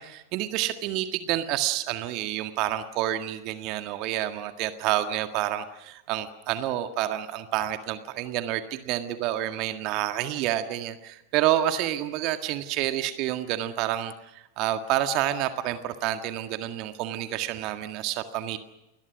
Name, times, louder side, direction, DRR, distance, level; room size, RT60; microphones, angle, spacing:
voice 1, 0.0-18.6, right 13 dB, 40° right, 8 dB, 1.8 m, -29 dB
29.5 x 21.0 x 6.2 m, 0.95 s
figure-of-eight pair, 90°, 0 cm